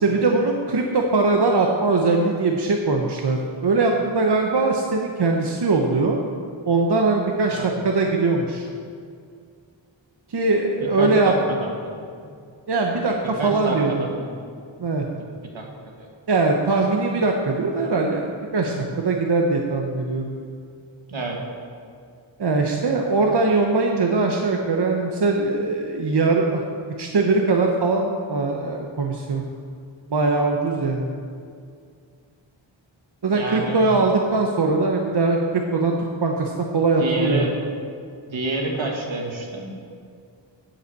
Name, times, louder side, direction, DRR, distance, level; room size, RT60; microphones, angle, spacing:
voice 1, 0.0-6.2 6.7-8.7 10.3-11.3 12.7-14.1 14.8-15.1 16.3-20.3 22.4-26.6 27.0-29.4 30.1-31.1 33.2-37.5, right 3 dB, 60° right, 1 dB, 1.0 m, -21 dB
voice 2, 11.0-11.3 11.6-11.9 12.2-12.3 13.4-14.3 15.5-15.7 16.0-16.1 18.7-18.9 21.1-21.4 33.3-33.8 37.0-37.5 38.3-39.7, right 1 dB, 80° right, 0 dB, 1.9 m, -28 dB
8.2 x 7.2 x 8.1 m, 2.2 s
wide cardioid pair, 70°, 46 cm